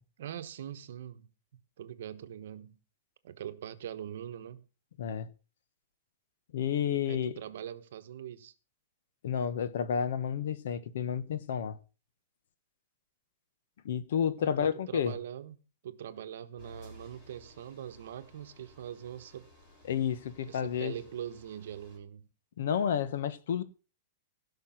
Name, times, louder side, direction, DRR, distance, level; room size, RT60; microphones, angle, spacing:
voice 1, 0.2-1.3 1.8-2.8 3.2-4.6 7.1-8.5 14.4-15.6 15.8-19.5 20.5-22.3, right 10 dB, 65° right, 1.2 m, -42 dB
voice 2, 6.5-7.3 9.2-11.8 13.8-15.1 19.9-20.9 22.6-23.6, left 8 dB, 65° left, 1.3 m, -30 dB
sound 1, 16.6-22.0, equal, 30° left, 4.9 m, -56 dB
16.5 x 5.9 x 5.9 m
supercardioid pair, 170°, 0 cm